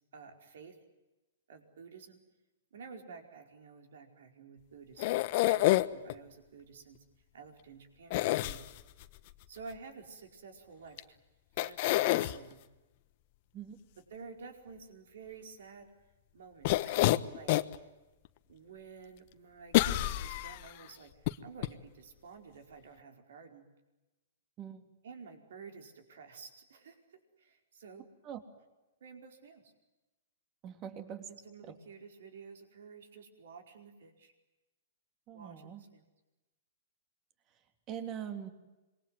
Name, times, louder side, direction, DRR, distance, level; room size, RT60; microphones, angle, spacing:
voice 1, 0.1-0.8 1.5-2.2 2.7-5.1 5.4-7.0 7.3-8.7 9.5-11.2 11.5-12.6 14.1-15.9 16.3-17.0 17.3-17.5 18.5-23.6 25.0-28.1 29.0-29.7 31.3-34.3 35.3-36.0, right 5 dB, 70° right, 5 dB, 4.8 m, -51 dB
sound 1, 5.0-6.1 8.1-9.0 11.0-11.1 11.6-12.3 16.6-17.8 18.2-18.3 19.7-20.7 21.3-21.4 21.6-21.7, left 17 dB, 50° left, 1.1 m, -27 dB
voice 2, 30.6-31.3 31.7-31.8 35.3-35.8 37.9-38.5, right 9 dB, 35° right, 8 dB, 3.4 m, -42 dB
27.5 x 22.5 x 9.5 m, 1.1 s
hypercardioid pair, 115°, 0 cm